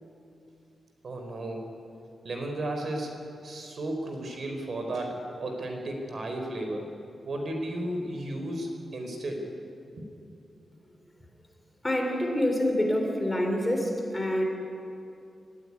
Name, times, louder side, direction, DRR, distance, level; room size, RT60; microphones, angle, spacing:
voice 1, 1.0-1.7 2.2-3.1 3.4-6.9 7.2-9.5 10.0-10.1, right 1 dB, 55° right, 3 dB, 4.1 m, -34 dB
voice 2, 11.8-14.4, left 1 dB, 15° left, 2 dB, 3.5 m, -26 dB
26.0 x 15.0 x 9.8 m, 2.7 s
wide cardioid pair, 125°, 0 cm